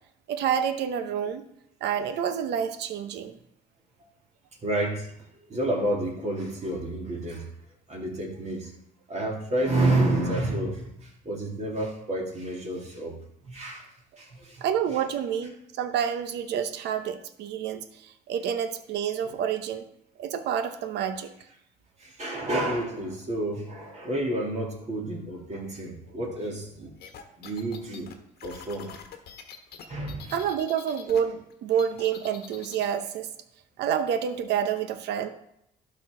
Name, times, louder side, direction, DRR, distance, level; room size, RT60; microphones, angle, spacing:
voice 1, 0.3-1.4 1.8-3.4 14.6-19.8 20.2-21.3 30.3-33.3 33.8-35.3, right 8 dB, 70° right, 10 dB, 0.8 m, -28 dB
voice 2, 4.6-7.5 7.9-8.7 9.1-13.2 13.4-13.9 14.2-14.6 19.2-19.3 22.0-26.9 27.4-28.1 28.4-28.9 29.9-30.3, right 1 dB, 40° right, -2 dB, 2.9 m, -30 dB
sound 1, 27.0-31.2 31.5-32.9, left 7 dB, 60° left, 1.2 m, -45 dB
12.0 x 4.4 x 3.8 m, 0.75 s
supercardioid pair, 80°, 18 cm